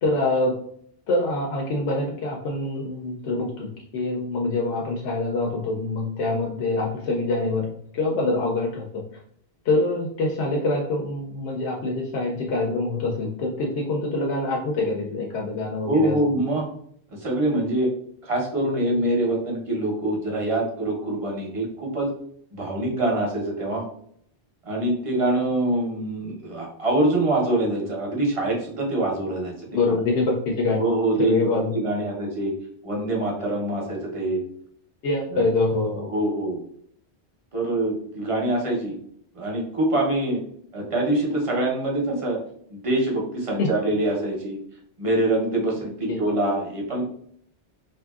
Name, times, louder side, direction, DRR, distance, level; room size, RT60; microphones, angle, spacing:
voice 1, 0.0-0.6 1.1-3.7 3.9-7.7 7.9-9.0 9.7-16.1 29.7-30.8 31.2-31.7 32.0-32.2 35.0-36.0 43.6-43.7 46.1-46.2, left 2 dB, 85° left, -1 dB, 0.9 m, -25 dB
voice 2, 15.8-16.7 17.1-17.9 18.2-22.1 22.5-23.8 24.6-29.8 30.8-31.4 31.7-32.5 32.8-34.4 35.3-35.5 36.0-36.6 37.5-38.9 39.3-40.4 40.7-42.4 42.7-44.6 45.0-47.0, right 1 dB, 35° right, -1 dB, 0.7 m, -24 dB
2.8 x 2.6 x 2.3 m, 0.64 s
omnidirectional pair, 1.1 m